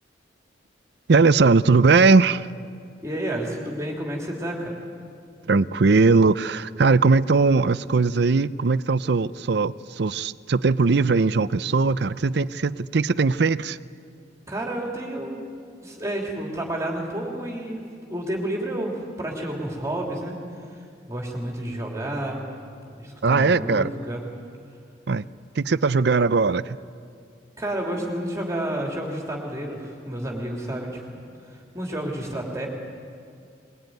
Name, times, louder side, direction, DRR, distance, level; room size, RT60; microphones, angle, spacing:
voice 1, 1.1-2.5 5.5-13.8 23.2-23.9 25.1-25.3 25.6-26.8, right 4 dB, 65° right, 16 dB, 0.6 m, -19 dB
voice 2, 3.0-4.7 14.5-15.4 15.8-17.8 18.1-20.4 21.1-22.4 22.8-24.2 27.6-31.0 31.7-32.7, right 1 dB, 15° right, -1 dB, 2.9 m, -30 dB
22.0 x 21.5 x 9.3 m, 2.3 s
head